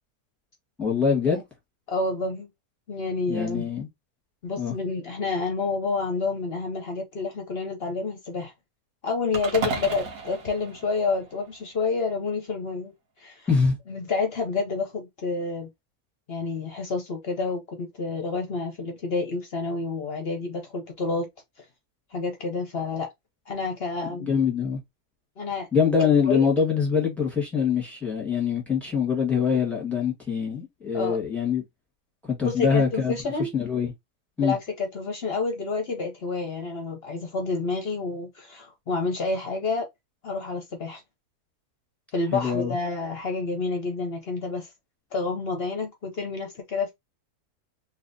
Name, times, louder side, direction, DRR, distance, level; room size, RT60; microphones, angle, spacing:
voice 1, 0.8-1.4 3.3-3.9 4.6-4.7 13.5-13.8 24.2-24.8 25.7-31.6 32.2-33.9 34.4-34.5 42.3-42.7, left 6 dB, ahead, 1.5 m, -24 dB
voice 2, 1.9-2.5 2.9-3.7 4.4-8.5 9.0-12.9 13.2-13.5 13.9-15.7 16.3-21.3 22.1-23.1 23.5-24.3 25.4-25.7 26.2-26.5 30.9-31.2 32.4-33.5 34.4-39.8 40.2-41.0 42.1-44.7 45.1-46.9, left 4 dB, 50° left, 0.8 m, -29 dB
sound 1, 9.3-11.7, right 3 dB, 70° right, 1.5 m, -33 dB
3.3 x 2.8 x 2.6 m
omnidirectional pair, 1.6 m